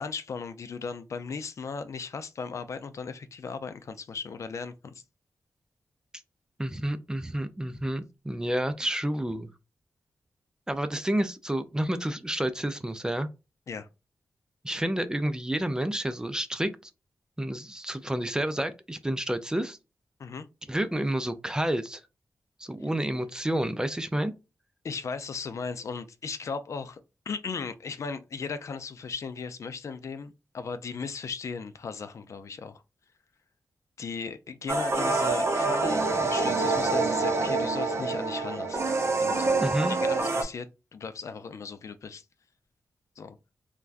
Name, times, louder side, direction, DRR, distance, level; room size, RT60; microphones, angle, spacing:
voice 1, 0.0-4.9 13.7-13.9 20.2-20.5 24.8-27.0 27.3-32.8 34.0-38.9 39.2-39.6 39.9-40.7 40.9-42.2 43.2-43.4, left 5 dB, 60° left, 0.4 m, -37 dB
voice 2, 6.6-9.5 10.7-13.3 14.6-16.9 17.4-19.8 20.7-22.0 22.6-24.3 39.6-40.0, right 1 dB, 10° right, 0.4 m, -29 dB
sound 1, 34.7-40.4, right 3 dB, 50° right, 0.6 m, -26 dB
3.4 x 2.2 x 2.4 m
wide cardioid pair, 100°, 6 cm